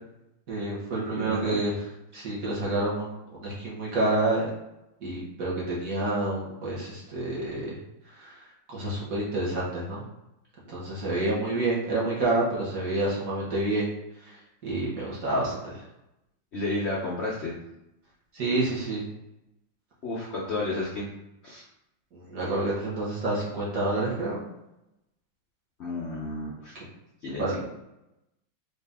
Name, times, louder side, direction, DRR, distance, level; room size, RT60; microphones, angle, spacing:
voice 1, 0.5-1.7 2.1-4.5 5.0-7.8 8.2-8.3 8.7-10.0 10.7-13.9 14.2-15.8 18.3-19.0 22.1-24.4 27.4-27.6, right 2 dB, 50° right, -6 dB, 1.5 m, -28 dB
voice 2, 1.1-1.6 16.5-17.6 20.0-21.1 21.4-21.6 25.8-26.8 27.2-27.6, left 2 dB, 60° left, -5 dB, 0.7 m, -32 dB
4.0 x 2.6 x 3.5 m, 0.89 s
omnidirectional pair, 2.0 m